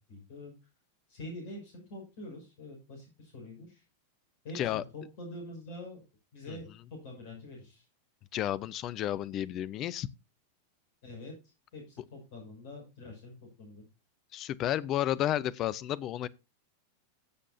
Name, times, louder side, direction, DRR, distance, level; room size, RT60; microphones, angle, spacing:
voice 1, 0.1-0.5 1.1-3.8 4.4-6.0 6.3-7.8 11.0-11.3 11.7-13.8, left 1 dB, 50° left, 6.4 m, -45 dB
voice 2, 8.3-10.1 14.3-16.3, left 12 dB, 35° left, 0.8 m, -31 dB
16.5 x 7.6 x 2.7 m
figure-of-eight pair, 90°, 0 cm